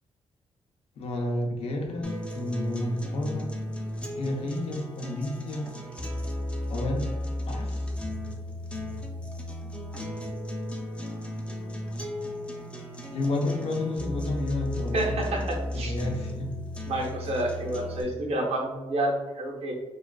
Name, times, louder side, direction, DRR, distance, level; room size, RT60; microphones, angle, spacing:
voice 1, 1.0-3.5 4.1-5.7 6.7-7.1 7.5-7.9 13.1-15.2 15.7-16.5, left 2 dB, 75° left, 1 dB, 0.5 m, -31 dB
sound 1, 2.0-18.0, left 1 dB, 10° left, 0.4 m, -34 dB
voice 2, 14.9-15.9 16.9-19.7, right 1 dB, 70° right, 0 dB, 0.6 m, -29 dB
2.4 x 2.3 x 2.2 m, 1.2 s
cardioid pair, 90°, 11 cm